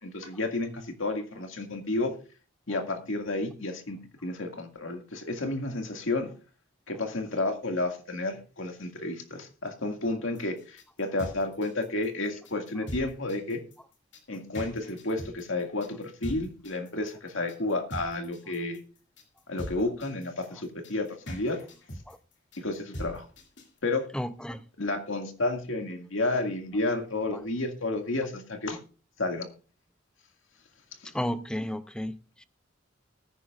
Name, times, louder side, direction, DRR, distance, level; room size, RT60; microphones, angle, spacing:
voice 1, 0.0-2.1 2.7-6.3 6.9-13.6 14.3-18.8 19.5-21.6 22.6-23.2 23.8-24.1 24.8-28.8 29.2-29.5 31.0-31.1, left 2 dB, 80° left, 2.1 m, -31 dB
sound 1, 10.3-23.8, equal, 60° left, 2.4 m, -42 dB
voice 2, 24.1-24.6 27.3-27.4 31.1-32.4, equal, 5° left, 0.5 m, -33 dB
19.5 x 10.0 x 2.5 m
head